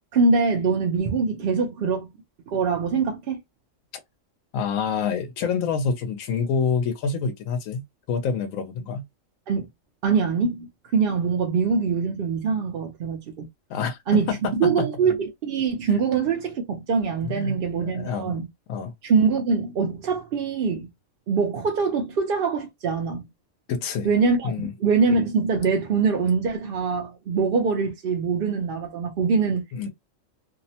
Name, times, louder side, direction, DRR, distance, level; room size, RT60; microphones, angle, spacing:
voice 1, 0.1-2.1 2.5-3.4 9.5-9.7 10.0-13.4 14.1-18.5 19.0-20.9 21.3-23.2 24.0-29.9, right 5 dB, 60° right, 0.6 m, -23 dB
voice 2, 4.5-9.0 13.7-14.9 17.2-18.4 18.7-18.9 23.7-24.1 24.4-24.7 29.7-29.9, left 6 dB, 85° left, 1.0 m, -27 dB
2.7 x 2.0 x 2.7 m
omnidirectional pair, 1.3 m